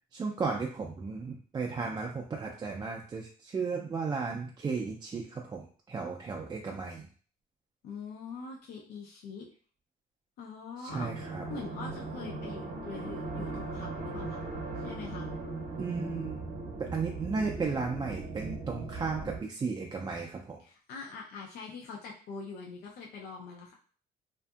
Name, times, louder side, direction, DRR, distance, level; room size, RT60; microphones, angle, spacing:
voice 1, 0.1-7.0 10.9-11.4 15.8-16.4 16.8-20.6, right 4 dB, 25° right, 0 dB, 0.3 m, -34 dB
voice 2, 7.8-9.5 10.4-11.1 11.5-14.4 14.8-15.3 20.6-23.7, left 4 dB, 70° left, -1 dB, 0.5 m, -43 dB
sound 1, 10.9-19.4, right 3 dB, 50° right, 0.7 m, -38 dB
2.6 x 2.5 x 2.3 m, 0.43 s
cardioid pair, 110°, 17 cm